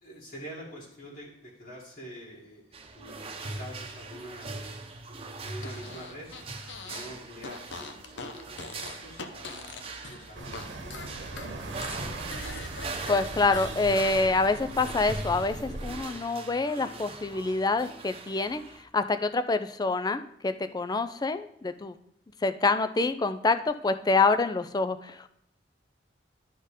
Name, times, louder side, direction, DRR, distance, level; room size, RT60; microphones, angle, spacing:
voice 1, 0.0-4.6 5.4-6.3 6.8-11.7, equal, 55° left, -7 dB, 2.1 m, -46 dB
sound 1, 2.7-18.8, right 3 dB, 35° right, 0.9 m, -41 dB
Fart, 5.6-7.1 7.4-10.6 10.9-13.7, left 4 dB, 75° left, 0.8 m, -42 dB
sound 2, 10.4-16.0, right 2 dB, 80° right, 1.2 m, -40 dB
voice 2, 13.1-18.6 18.9-21.9 22.4-25.3, left 3 dB, 20° left, 11 dB, 0.4 m, -26 dB
11.5 x 4.4 x 5.1 m, 0.76 s
head